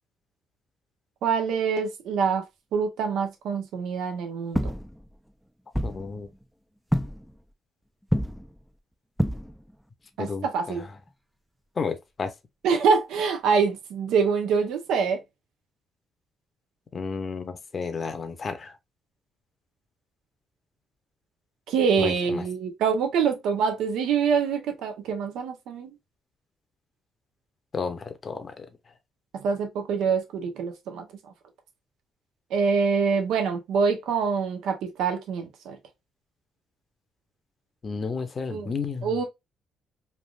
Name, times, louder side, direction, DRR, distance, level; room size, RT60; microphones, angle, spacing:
voice 1, 1.2-2.4 2.7-4.7 10.2-10.8 12.6-15.2 21.7-25.9 29.3-31.0 32.5-35.8 38.5-38.7 39.0-39.2, right 6 dB, 85° right, 0.8 m, -25 dB
sound 1, 4.5-5.3 5.7-6.4 6.9-7.4 8.0-8.7 9.2-9.8 11.0-11.1 13.1-13.2, equal, ahead, 0.4 m, -28 dB
voice 2, 5.8-6.3 10.2-10.8 11.8-12.3 16.9-18.7 22.0-22.4 27.7-28.7 37.8-39.1, left 5 dB, 40° left, 0.7 m, -32 dB
3.3 x 2.5 x 2.3 m
cardioid pair, 90°, 0 cm